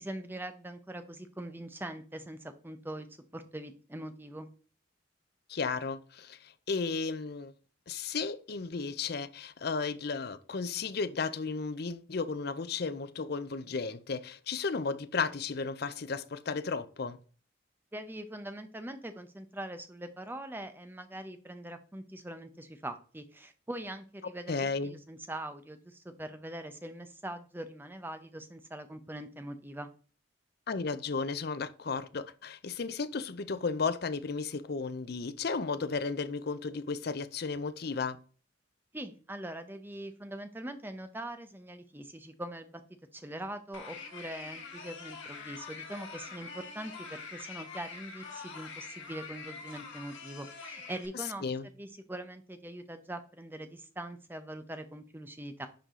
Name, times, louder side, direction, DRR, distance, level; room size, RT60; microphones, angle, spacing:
voice 1, 0.0-3.1 3.3-4.5 17.9-29.9 38.9-42.8 43.1-51.5 51.8-55.7, right 1 dB, 10° right, 0.7 m, -42 dB
voice 2, 5.5-7.5 7.9-17.2 24.5-25.0 30.7-38.2 51.4-51.6, left 4 dB, 50° left, 0.5 m, -34 dB
sound 1, 43.7-51.1, left 5 dB, 85° left, 4.0 m, -45 dB
10.5 x 4.8 x 3.7 m
head